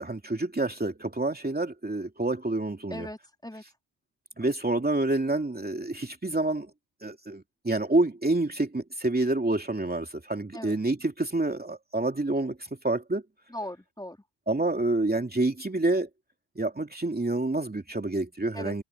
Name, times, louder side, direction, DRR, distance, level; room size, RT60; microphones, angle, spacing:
voice 1, 0.0-3.1 4.4-6.7 7.0-13.2 14.5-16.1 16.6-18.8, right 2 dB, 20° right, 2.8 m, -28 dB
voice 2, 2.9-3.6 10.5-10.8 13.5-14.2 18.5-18.8, left 1 dB, 10° left, 3.3 m, -39 dB
cardioid pair, 80°, 48 cm